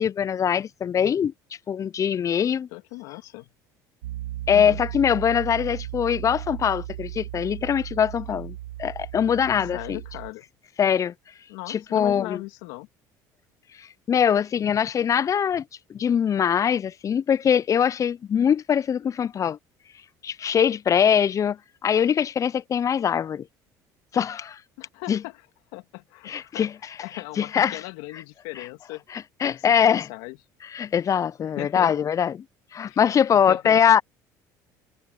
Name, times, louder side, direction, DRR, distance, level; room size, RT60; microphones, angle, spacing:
voice 1, 0.0-1.3 1.7-2.7 4.5-10.0 10.8-11.1 11.7-12.4 13.8-15.6 15.9-19.6 20.2-23.5 24.1-24.6 25.1-25.2 26.3-26.7 27.4-27.8 29.1-30.1 30.7-32.4 32.7-34.0, left 8 dB, 35° left, 0.5 m, -22 dB
voice 2, 2.7-3.4 4.5-4.8 9.7-10.4 11.5-12.9 24.8-25.4 25.7-26.7 27.0-29.0 29.4-30.4 31.4-31.9 32.8-33.0 33.3-33.8, left 22 dB, 80° left, 2.6 m, -38 dB
Piano, 4.0-10.3, right 14 dB, 90° right, 1.2 m, -36 dB
supercardioid pair, 80°, 9 cm